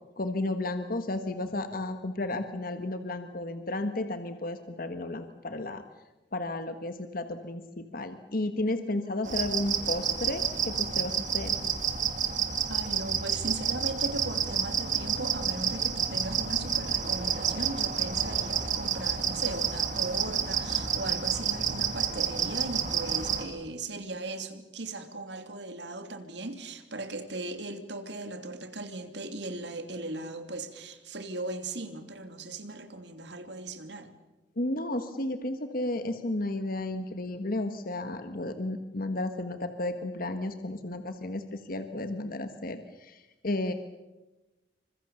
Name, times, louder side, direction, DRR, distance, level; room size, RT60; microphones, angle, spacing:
voice 1, 0.2-5.8 6.3-11.6 34.6-43.7, left 2 dB, 50° left, 8 dB, 1.4 m, -33 dB
sound 1, 9.3-23.4, right 7 dB, 45° right, 2.6 m, -29 dB
voice 2, 12.7-34.1, right 2 dB, 70° right, 8 dB, 2.9 m, -38 dB
28.0 x 25.0 x 7.1 m, 1.1 s
head